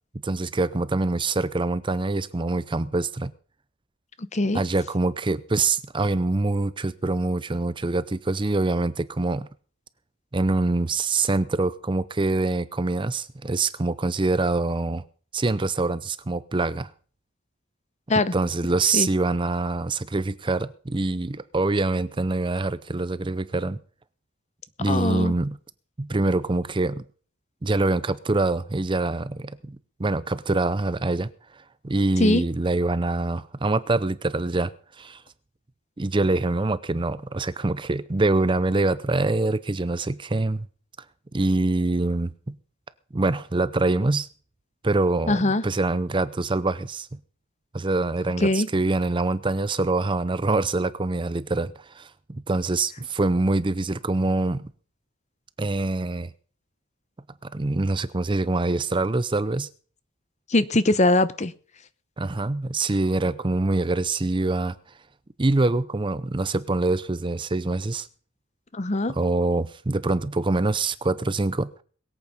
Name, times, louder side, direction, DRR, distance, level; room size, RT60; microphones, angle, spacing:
voice 1, 0.2-3.3 4.5-9.5 10.3-15.0 15.3-16.9 18.3-23.8 24.8-25.6 26.0-27.0 27.6-31.3 31.8-34.7 35.0-35.2 36.0-40.7 41.3-42.5 43.1-44.3 44.8-47.1 47.7-54.6 55.6-56.3 57.4-59.7 62.2-64.8 65.4-68.1 69.1-71.8, right 2 dB, 25° right, 0.5 m, -25 dB
voice 2, 4.3-4.6 18.1-18.3 18.9-19.1 24.9-25.3 32.2-32.4 45.3-45.6 48.4-48.7 60.5-61.5 68.7-69.1, left 2 dB, 35° left, 0.8 m, -21 dB
21.5 x 8.5 x 5.3 m
head